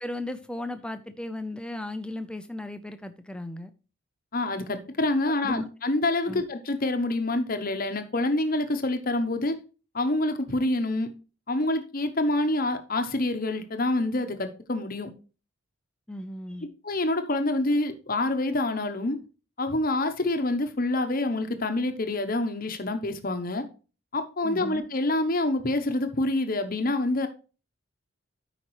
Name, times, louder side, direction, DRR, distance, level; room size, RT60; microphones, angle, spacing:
voice 1, 0.0-3.7 5.4-5.6 6.3-6.4 16.1-16.7 24.4-24.8, left 1 dB, 5° left, 0.5 m, -36 dB
voice 2, 4.3-9.6 9.9-11.1 11.5-15.1 16.6-19.2 19.6-23.6 24.1-27.3, left 2 dB, 40° left, 0.9 m, -27 dB
12.5 x 5.1 x 3.1 m
head